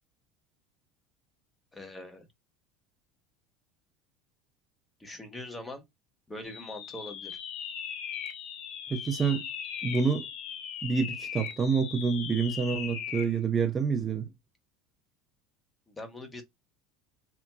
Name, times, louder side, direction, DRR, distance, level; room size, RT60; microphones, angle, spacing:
voice 1, 1.7-2.3 5.0-5.8 6.3-7.4 15.9-16.4, left 1 dB, 15° left, 1.0 m, -42 dB
sound 1, 6.4-13.4, left 8 dB, 55° left, 0.6 m, -39 dB
voice 2, 8.9-9.5 9.8-10.3 10.8-14.3, right 5 dB, 25° right, 0.6 m, -27 dB
2.9 x 2.5 x 2.2 m
supercardioid pair, 100°, 0 cm